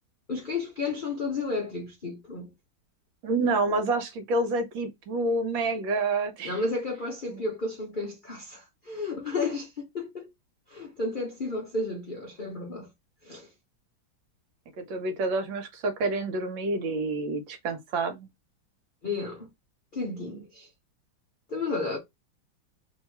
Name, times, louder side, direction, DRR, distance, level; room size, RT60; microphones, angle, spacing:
voice 1, 0.3-2.5 6.4-10.3 10.7-12.9 13.2-13.5 19.0-19.5 19.9-20.7 21.5-22.0, left 3 dB, 75° left, 0.4 m, -32 dB
voice 2, 3.2-6.5 7.3-7.4 14.8-18.3, right 3 dB, 75° right, 1.5 m, -28 dB
3.0 x 2.8 x 4.3 m
omnidirectional pair, 2.2 m